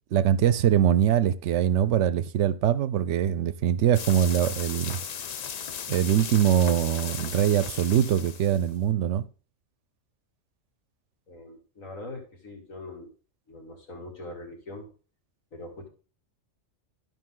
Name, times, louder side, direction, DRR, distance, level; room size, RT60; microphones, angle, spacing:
voice 1, 0.1-5.0 5.9-9.3, right 10 dB, 70° right, 0.9 m, -23 dB
sound 1, 3.9-8.7, left 7 dB, 65° left, 0.4 m, -36 dB
voice 2, 11.3-13.1 13.5-14.9 15.5-15.9, left 2 dB, 85° left, 2.7 m, -42 dB
12.0 x 5.4 x 3.8 m
omnidirectional pair, 1.4 m